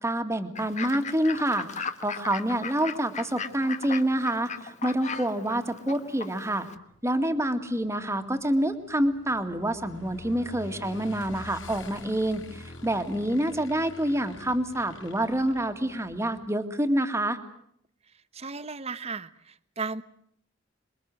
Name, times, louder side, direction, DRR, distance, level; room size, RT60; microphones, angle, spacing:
voice 1, 0.0-6.7 7.0-17.4, right 1 dB, 15° right, 8 dB, 2.1 m, -27 dB
Fowl / Bird, 0.6-6.8, left 5 dB, 40° left, 1.5 m, -38 dB
Motorcycle / Engine, 6.7-16.4, left 2 dB, 85° left, 5.0 m, -46 dB
voice 2, 18.3-20.0, right 4 dB, 35° right, 14 dB, 1.1 m, -35 dB
27.5 x 22.5 x 7.8 m, 0.70 s
head